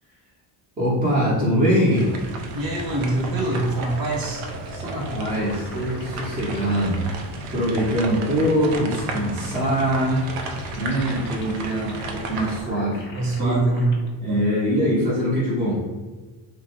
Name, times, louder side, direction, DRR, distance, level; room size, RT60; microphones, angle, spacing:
voice 1, 0.8-2.1 4.7-7.1 7.5-10.3 10.8-13.1 13.4-13.6 14.2-15.8, equal, 15° right, -8 dB, 0.6 m, -23 dB
sound 1, 1.9-12.6, right 3 dB, 85° right, 0.6 m, -33 dB
voice 2, 2.5-4.4 13.1-13.9, right 2 dB, 45° right, -2 dB, 0.9 m, -24 dB
sound 2, 3.5-14.1, left 2 dB, 25° left, 0.4 m, -42 dB
2.5 x 2.1 x 2.8 m, 1.3 s
cardioid pair, 100°, 49 cm